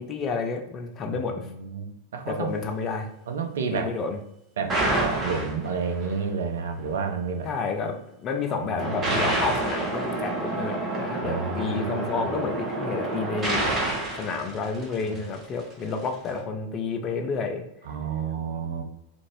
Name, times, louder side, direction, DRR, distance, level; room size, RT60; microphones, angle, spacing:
voice 1, 0.0-1.5 2.3-3.1 3.7-4.2 7.4-13.7 14.1-17.6, left 4 dB, 30° left, 4 dB, 0.4 m, -30 dB
voice 2, 1.0-2.5 3.3-3.9 4.6-7.5 8.5-9.3 11.2-12.4 15.0-15.2 17.8-18.8, right 5 dB, 60° right, 5 dB, 0.4 m, -31 dB
sound 1, 4.7-6.1 8.8-15.3, right 2 dB, 20° right, 0.9 m, -28 dB
2.6 x 2.5 x 3.0 m, 0.84 s
figure-of-eight pair, 90°, 0 cm